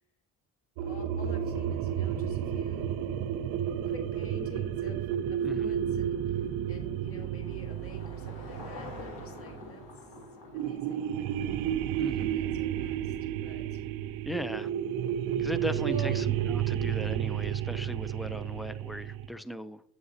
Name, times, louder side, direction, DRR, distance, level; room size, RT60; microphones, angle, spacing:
voice 1, 0.8-3.0 3.8-10.1 10.5-11.7 12.2-13.2 13.4-13.8 14.5-14.7 15.8-16.2, equal, 40° left, 3 dB, 1.6 m, -48 dB
sound 1, 0.8-9.9 10.5-19.3, right 9 dB, 90° right, 0.5 m, -32 dB
voice 2, 5.4-5.7 12.0-12.4 14.3-14.7 15.4-19.8, equal, ahead, 13 dB, 0.4 m, -38 dB
Car passing by / Engine, 6.1-12.6, left 2 dB, 75° left, 2.3 m, -47 dB
8.0 x 8.0 x 2.7 m, 0.68 s
cardioid pair, 75°, 35 cm